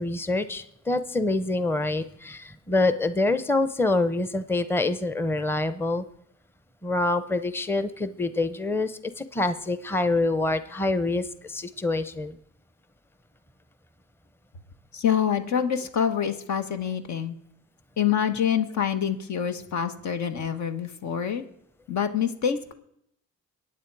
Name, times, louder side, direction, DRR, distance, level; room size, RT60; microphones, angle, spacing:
voice 1, 0.0-6.0 6.8-12.4, left 2 dB, 5° left, 12 dB, 0.8 m, -26 dB
voice 2, 14.9-17.4 18.0-21.4 21.9-22.7, left 8 dB, 70° left, 8 dB, 1.5 m, -26 dB
22.5 x 9.2 x 4.8 m, 0.74 s
cardioid pair, 90°, 30 cm